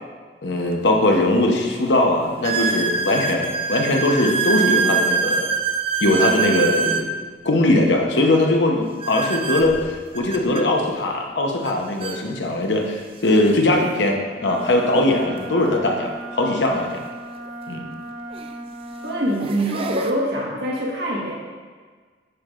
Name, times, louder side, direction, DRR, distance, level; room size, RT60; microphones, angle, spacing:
voice 1, 0.4-5.5 6.0-7.1 7.4-16.1 16.4-17.0 17.7-17.8, left 1 dB, 80° left, 1 dB, 0.9 m, -20 dB
sound 1, 0.7-0.8 1.5-1.6 2.4-7.1 9.0-10.6 11.6-11.7 12.0-12.2 13.0-13.1 15.3-15.4 17.5-17.6 18.3-18.6 19.2-20.1, right 5 dB, 30° right, 0.4 m, -24 dB
Wind instrument woodwind instrument, 14.3-19.3, right 1 dB, ahead, 0.8 m, -36 dB
voice 2, 19.0-21.3, right 1 dB, 70° right, -3 dB, 1.5 m, -24 dB
9.5 x 5.6 x 2.5 m, 1.5 s
head